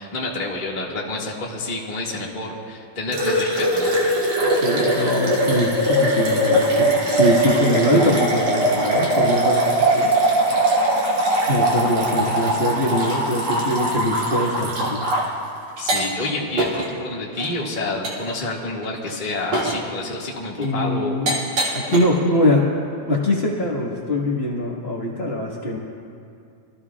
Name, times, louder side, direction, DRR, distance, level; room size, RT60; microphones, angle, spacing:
voice 1, 0.0-4.1 15.8-21.2, left 2 dB, 20° left, -4 dB, 1.5 m, -28 dB
sound 1, 3.1-15.3 15.8-16.3 16.6-16.9 17.4-17.5 18.0-18.3 18.8-19.1 19.5-19.8 20.6-20.7 21.3-22.0, right 1 dB, 55° right, 3.9 m, -21 dB
voice 2, 4.5-10.1 11.5-15.1 20.6-21.4 21.7-22.7 23.1-25.8, left 1 dB, 35° left, -4 dB, 1.0 m, -22 dB
26.5 x 15.0 x 2.4 m, 2.4 s
omnidirectional pair, 3.6 m